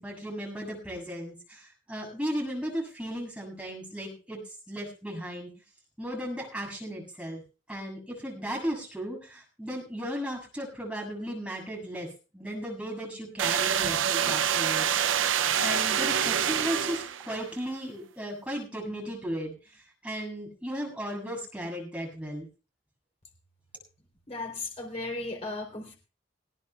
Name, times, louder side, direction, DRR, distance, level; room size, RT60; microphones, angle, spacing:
voice 1, 0.0-5.5 6.0-7.4 7.7-12.1 12.3-15.2 15.6-22.5, equal, 5° right, -1 dB, 7.3 m, -36 dB
sound 1, 13.4-17.4, right 8 dB, 80° right, 0.6 m, -26 dB
voice 2, 24.3-26.0, left 2 dB, 35° left, 1 dB, 3.6 m, -36 dB
20.0 x 17.5 x 2.4 m, 0.34 s
head